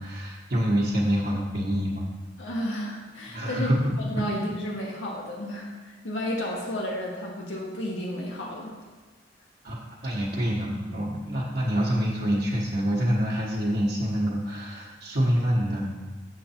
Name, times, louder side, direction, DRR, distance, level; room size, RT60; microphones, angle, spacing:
voice 1, 0.0-2.0 3.3-3.9 9.6-15.8, equal, 55° right, -7 dB, 1.3 m, -26 dB
voice 2, 2.4-3.7 4.0-8.7, left 1 dB, 85° left, -3 dB, 1.3 m, -32 dB
7.5 x 6.6 x 4.4 m, 1.3 s
head